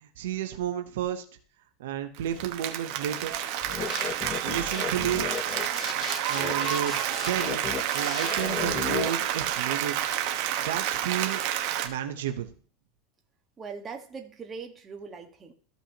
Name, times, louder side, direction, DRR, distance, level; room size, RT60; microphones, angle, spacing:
voice 1, 0.0-1.2 1.8-3.3 4.4-5.3 6.0-7.6 7.9-10.0 10.6-11.4 11.8-12.5, right 10 dB, 85° right, 7 dB, 0.8 m, -32 dB
Applause, 2.2-11.9, right 11 dB, 55° right, 1.2 m, -29 dB
sound 1, 3.6-9.1, left 7 dB, 35° left, 0.9 m, -34 dB
voice 2, 13.6-15.5, right 5 dB, 20° right, 3 dB, 1.4 m, -40 dB
14.5 x 5.5 x 2.9 m, 0.43 s
supercardioid pair, 130°, 0 cm